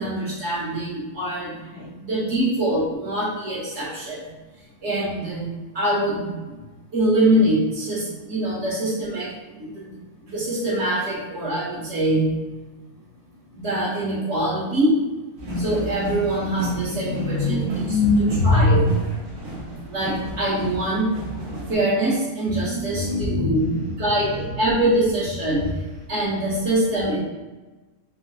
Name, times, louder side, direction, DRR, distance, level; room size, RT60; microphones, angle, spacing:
voice 1, 0.0-1.5 1.9-4.2 4.8-6.5 6.9-9.3 9.6-9.9 10.2-12.3 13.5-15.0 15.6-17.6 18.4-18.8 19.9-21.1 21.7-23.7 24.0-25.6 26.1-27.2, right 1 dB, 55° right, -6 dB, 1.4 m, -24 dB
sound 1, 15.4-21.7, equal, 80° right, 1.2 m, -32 dB
voice 2, 16.6-18.9 22.5-24.5, left 2 dB, 75° left, -5 dB, 0.4 m, -23 dB
3.7 x 2.6 x 2.3 m, 1.2 s
omnidirectional pair, 1.5 m